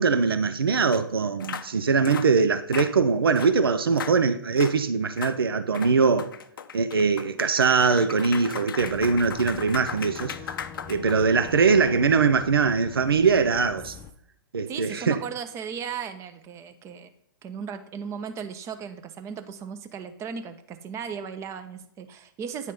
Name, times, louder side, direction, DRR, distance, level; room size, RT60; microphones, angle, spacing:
voice 1, 0.0-6.3 6.7-10.3 10.9-14.0 14.5-15.2, right 5 dB, 85° right, 0.5 m, -22 dB
sound 1, 0.9-1.0 1.4-1.7 2.0-2.3 2.7-2.9 3.3-3.5 3.9-4.2 4.6-4.8 5.2-5.4 5.7-11.5, left 7 dB, 70° left, 0.5 m, -37 dB
Boat Water vehicle / Engine, 8.8-14.1, left 6 dB, 20° left, 0.6 m, -44 dB
voice 2, 14.7-17.1 17.4-22.7, right 7 dB, 25° right, 0.7 m, -36 dB
9.2 x 3.2 x 5.3 m
hypercardioid pair, 115°, 12 cm